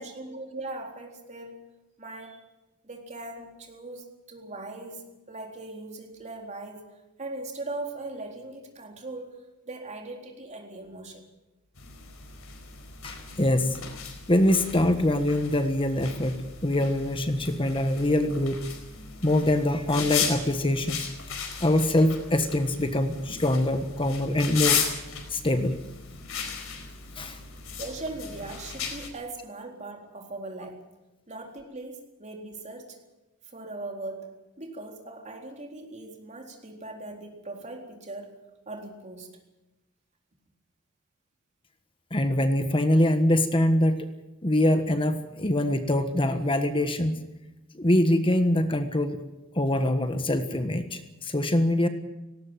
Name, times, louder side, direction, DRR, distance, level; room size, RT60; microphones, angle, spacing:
voice 1, 0.0-1.7 2.0-2.4 2.8-6.9 7.2-9.4 9.7-11.2 27.8-30.8 31.3-33.0 33.5-34.3 34.6-38.4 38.7-39.3, right 2 dB, 35° right, 2 dB, 3.9 m, -39 dB
sound 1, 11.8-29.1, left 7 dB, 80° left, 4.6 m, -35 dB
voice 2, 13.0-13.8 14.3-18.6 19.2-21.1 21.6-24.8 25.3-25.8 27.2-27.4 42.1-44.1 44.4-47.2 47.7-49.2 49.5-51.9, left 1 dB, 25° left, 8 dB, 1.4 m, -24 dB
18.5 x 18.5 x 9.2 m, 1.0 s
head